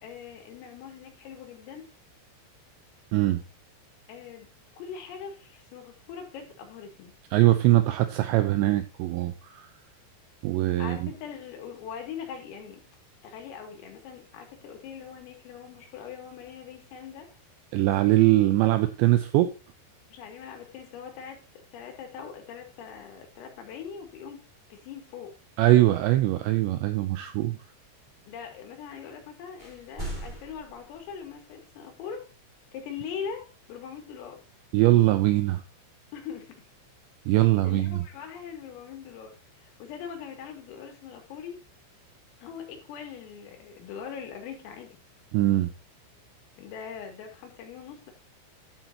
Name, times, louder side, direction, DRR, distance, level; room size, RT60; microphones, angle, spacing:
voice 1, 0.0-1.9 4.1-7.1 10.8-12.8 13.2-17.3 20.1-21.4 21.7-24.4 24.7-25.3 28.3-32.2 32.7-34.4 36.1-36.7 37.6-39.3 39.6-41.6 42.4-45.0 46.6-48.1, left 7 dB, 80° left, 3 dB, 5.1 m, -41 dB
voice 2, 7.3-9.7 10.4-11.1 17.7-19.5 25.6-27.6 34.7-35.6 37.3-38.0 45.3-45.7, right 16 dB, 85° right, 9 dB, 2.6 m, -22 dB
sound 1, 28.1-28.8 29.1-29.2 29.4-31.4, right 1 dB, 15° right, 1.4 m, -42 dB
12.5 x 8.0 x 2.8 m, 0.32 s
omnidirectional pair, 5.9 m